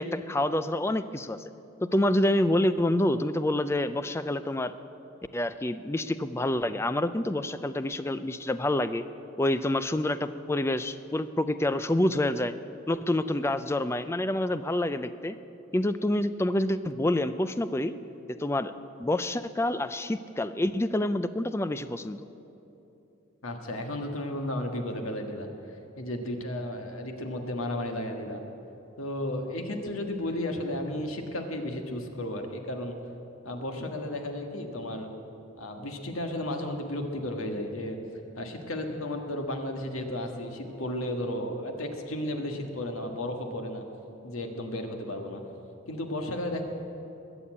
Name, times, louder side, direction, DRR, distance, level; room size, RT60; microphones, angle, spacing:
voice 1, 0.0-1.4 1.8-4.8 5.3-9.0 9.4-12.5 12.9-15.4 15.7-17.9 18.3-18.7 19.0-22.2, left 1 dB, 10° left, 12 dB, 0.4 m, -27 dB
voice 2, 23.4-25.5 26.0-28.4 29.0-32.9 33.4-35.1 35.6-38.0 38.3-43.8 44.2-45.4 45.9-46.6, left 1 dB, 85° left, 4 dB, 1.6 m, -33 dB
21.0 x 7.1 x 8.5 m, 3.0 s
head